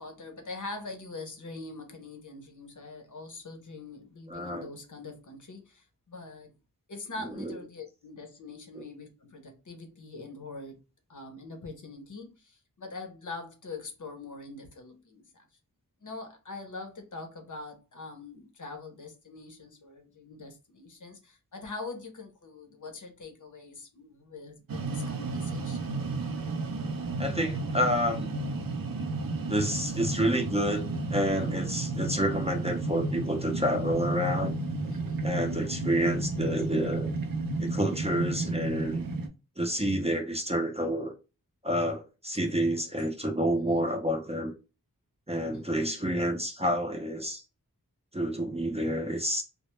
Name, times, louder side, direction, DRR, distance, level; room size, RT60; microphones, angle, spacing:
voice 1, 0.0-6.5 6.9-10.8 11.1-15.5 16.0-25.8 34.9-35.3 43.7-43.9 45.5-45.7, left 3 dB, 55° left, 0.7 m, -43 dB
voice 2, 4.3-4.7 7.3-7.6 8.8-8.9 27.2-28.3 29.5-34.6 34.8-37.1 37.6-39.0 39.6-41.1 41.6-44.5 45.3-47.4 48.1-49.4, equal, 20° right, 0.5 m, -29 dB
sound 1, 24.7-39.3, right 3 dB, 70° right, 0.5 m, -32 dB
2.1 x 2.0 x 3.0 m
wide cardioid pair, 45°, 36 cm